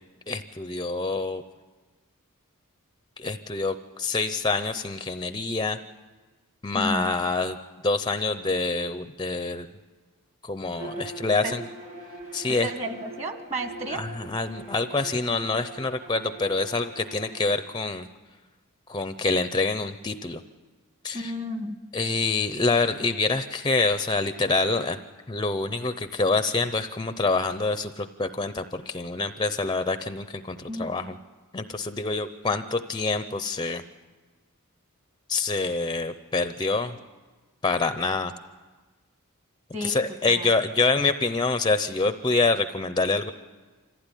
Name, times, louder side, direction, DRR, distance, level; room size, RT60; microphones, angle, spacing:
voice 1, 0.3-1.4 3.2-5.8 6.6-7.6 7.8-9.7 10.4-11.6 12.3-12.7 13.9-18.1 18.9-20.4 21.0-21.3 21.9-25.0 25.3-31.2 31.5-33.8 35.3-37.0 37.6-38.3 39.8-43.3, left 3 dB, 20° left, 10 dB, 0.6 m, -26 dB
voice 2, 6.7-7.1 11.4-11.6 12.5-14.0 21.1-21.8 30.7-31.2 39.7-40.5, right 1 dB, 30° right, 7 dB, 1.8 m, -33 dB
Bowed string instrument, 10.7-17.5, right 2 dB, 70° right, 7.7 m, -42 dB
26.0 x 15.5 x 10.0 m, 1.3 s
head